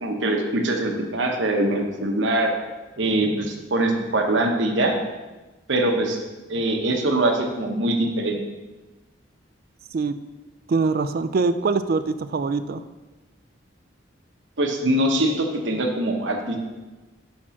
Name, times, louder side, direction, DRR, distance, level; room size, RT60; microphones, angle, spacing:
voice 1, 0.0-2.5 3.0-5.0 5.7-6.2 6.5-8.4 14.6-16.6, right 1 dB, 75° right, 3 dB, 1.0 m, -23 dB
voice 2, 10.7-12.8, right 4 dB, 50° right, 12 dB, 0.3 m, -23 dB
6.0 x 4.4 x 5.7 m, 1.2 s
head